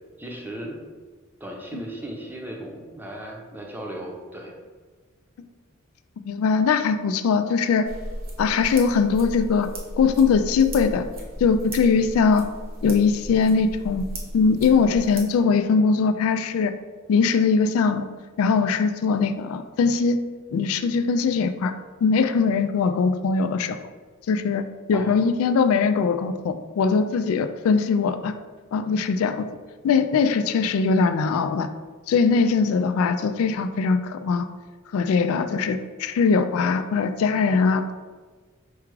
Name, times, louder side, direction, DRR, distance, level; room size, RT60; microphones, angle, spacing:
voice 1, 0.2-0.8 1.4-4.5 24.9-25.3, right 1 dB, 10° right, -1 dB, 0.6 m, -36 dB
voice 2, 6.2-7.9 8.4-9.7 10.0-11.1 11.4-12.5 12.8-14.0 14.3-16.7 17.1-18.0 18.4-20.2 20.5-21.7 22.0-23.8 24.3-28.3 28.7-29.5 29.8-31.7 32.1-34.5 34.9-37.9, left 5 dB, 85° left, 10 dB, 0.3 m, -21 dB
sound 1, 7.9-15.2, equal, 45° right, 0.9 m, -35 dB
4.7 x 2.4 x 4.6 m, 1.4 s
head